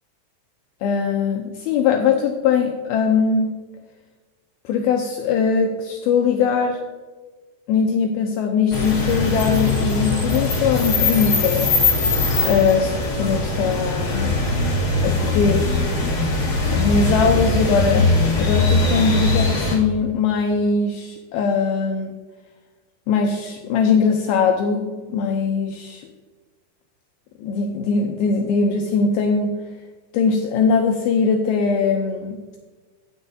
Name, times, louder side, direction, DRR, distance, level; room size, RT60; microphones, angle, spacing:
voice 1, 0.8-3.6 4.7-6.8 7.7-11.7 12.5-14.3 15.0-15.8 16.7-22.1 23.1-26.1 27.4-29.5 30.1-32.4, left 5 dB, 90° left, 3 dB, 2.2 m, -21 dB
sound 1, 8.7-19.7, left 2 dB, 60° left, 1.0 m, -21 dB
16.5 x 6.4 x 2.7 m, 1.3 s
omnidirectional pair, 5.1 m